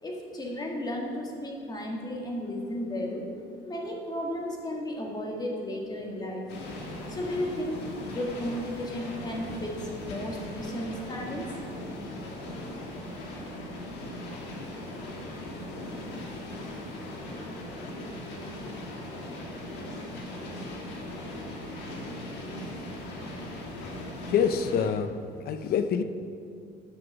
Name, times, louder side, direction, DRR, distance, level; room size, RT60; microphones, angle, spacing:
voice 1, 0.0-3.3 3.6-6.5 7.1-11.5, left 1 dB, 25° left, -1 dB, 1.6 m, -34 dB
sound 1, 6.5-24.9, left 1 dB, 85° left, 1.5 m, -39 dB
voice 2, 24.3-25.1 25.4-26.0, left 7 dB, 65° left, 10 dB, 0.6 m, -26 dB
7.9 x 6.0 x 6.0 m, 2.5 s
cardioid pair, 110°, 17 cm